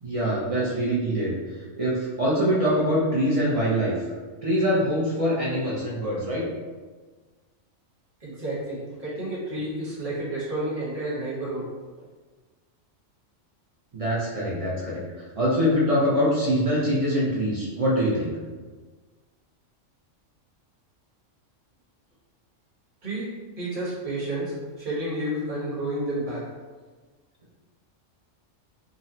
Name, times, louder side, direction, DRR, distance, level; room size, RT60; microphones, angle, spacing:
voice 1, 0.0-1.3 1.8-3.9 4.4-6.4 13.9-15.0 15.4-18.4, equal, 60° right, -7 dB, 0.3 m, -24 dB
voice 2, 8.2-11.6 23.0-23.3 23.6-26.4, right 1 dB, 30° right, -7 dB, 0.9 m, -30 dB
3.8 x 2.0 x 2.6 m, 1.4 s
omnidirectional pair, 1.3 m